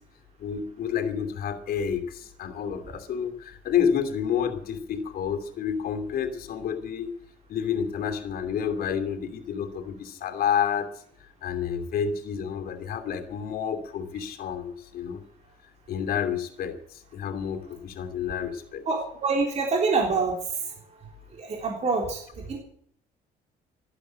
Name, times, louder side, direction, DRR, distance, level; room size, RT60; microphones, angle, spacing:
voice 1, 0.4-7.1 7.5-10.9 11.4-15.2 15.9-18.9, left 8 dB, 65° left, 6 dB, 2.8 m, -29 dB
voice 2, 18.9-20.4 20.6-22.6, right 4 dB, 40° right, 1 dB, 3.5 m, -27 dB
12.5 x 12.0 x 7.9 m, 0.65 s
cardioid pair, 110°, 17 cm